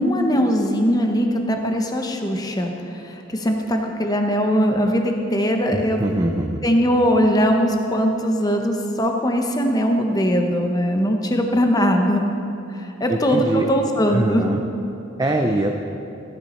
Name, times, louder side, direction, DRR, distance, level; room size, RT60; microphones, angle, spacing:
voice 1, 0.0-2.7 3.3-6.0 6.6-12.2 12.8-14.5, equal, 20° left, 3 dB, 0.9 m, -20 dB
voice 2, 5.7-6.6 13.1-13.7 14.1-14.6 15.2-15.7, right 1 dB, 20° right, 3 dB, 0.5 m, -22 dB
14.5 x 9.8 x 4.4 m, 2.9 s
head